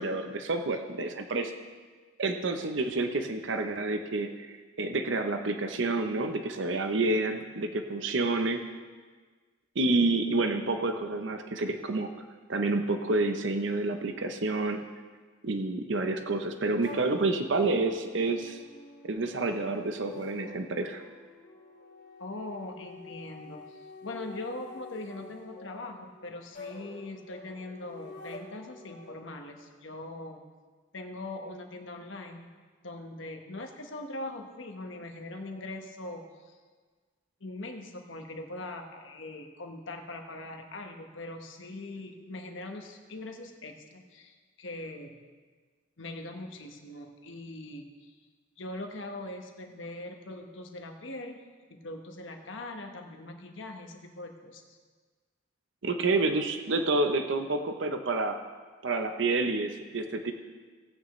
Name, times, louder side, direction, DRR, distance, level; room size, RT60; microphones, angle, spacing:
voice 1, 0.0-1.5 2.2-8.6 9.8-12.1 12.5-14.8 15.4-18.6 19.0-21.0 55.8-58.4 58.8-60.3, right 2 dB, 70° right, 6 dB, 0.7 m, -29 dB
sound 1, 16.8-29.1, left 2 dB, 55° left, 2.9 m, -48 dB
voice 2, 22.2-30.4 30.9-32.5 32.8-36.6 37.4-45.2 46.0-48.2 48.6-54.8, left 2 dB, 75° left, 3 dB, 1.2 m, -41 dB
17.5 x 9.0 x 3.1 m, 1.5 s
head